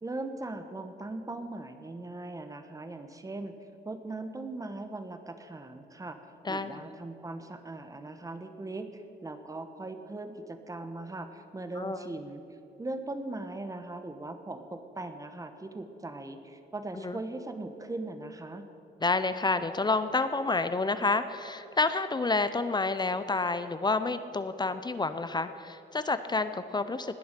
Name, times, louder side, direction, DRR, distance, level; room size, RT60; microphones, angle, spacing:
voice 1, 0.0-3.6 3.8-6.2 6.5-12.4 12.8-18.7, right 2 dB, 20° right, 8 dB, 1.0 m, -39 dB
voice 2, 6.4-6.8 11.8-12.0 17.0-17.2 19.0-27.2, left 3 dB, 20° left, 11 dB, 0.5 m, -29 dB
19.5 x 6.8 x 6.7 m, 2.9 s
cardioid pair, 110°, 19 cm